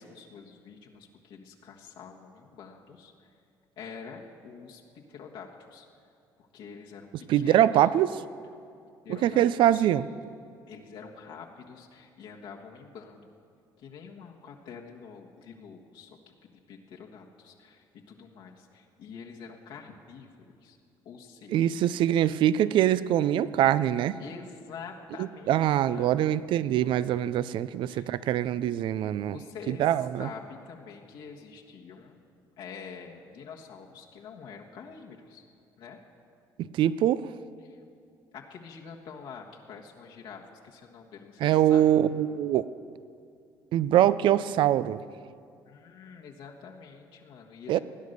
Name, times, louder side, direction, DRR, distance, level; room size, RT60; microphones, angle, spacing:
voice 1, 0.0-3.3 3.8-5.9 6.4-7.9 9.0-9.4 9.7-9.9 10.7-13.3 13.8-20.8 21.0-21.8 24.2-26.3 27.1-27.2 27.9-28.1 29.2-32.2 32.6-35.4 35.8-36.0 37.6-37.8 38.3-41.9 45.6-47.8, left 6 dB, 75° left, -1 dB, 1.5 m, -46 dB
voice 2, 7.3-8.2 9.1-10.1 21.5-24.2 25.2-29.4 29.7-30.3 36.6-37.3 41.4-42.7 43.7-45.0 47.7-47.8, right 11 dB, 70° right, 16 dB, 0.4 m, -24 dB
17.0 x 9.5 x 6.6 m, 2.4 s
cardioid pair, 90°, 9 cm